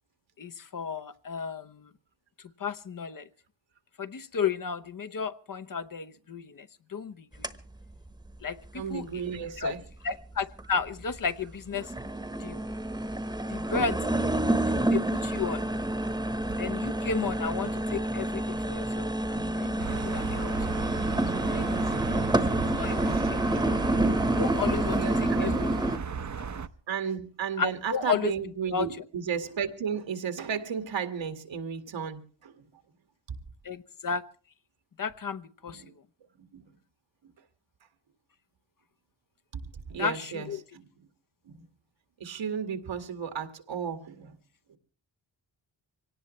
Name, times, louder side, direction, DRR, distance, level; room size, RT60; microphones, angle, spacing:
voice 1, 0.4-1.9 2.4-3.3 4.0-7.5 8.4-9.2 9.6-9.7 10.0-11.9 12.4-12.6 13.5-14.3 14.7-15.7 16.6-20.8 21.3-23.8 24.3-25.7 26.4-26.5 27.6-28.3 28.7-28.9 33.6-34.3 35.0-35.8 40.0-40.6, left 6 dB, 45° left, 0.9 m, -34 dB
sound 1, 7.4-7.5 8.1-8.2 8.8-8.9 10.1-10.2 10.6-11.2 11.5-26.0, right 1 dB, 10° right, 1.1 m, -28 dB
voice 2, 8.7-9.8 22.8-23.6 25.0-25.6 26.9-32.7 35.7-35.9 36.5-36.6 39.9-40.5 41.5-41.6 42.2-44.3 44.7-44.8, right 7 dB, 80° right, 2.0 m, -34 dB
sound 2, 19.8-26.7, right 6 dB, 40° right, 0.8 m, -34 dB
24.5 x 18.0 x 3.2 m
wide cardioid pair, 95°, 44 cm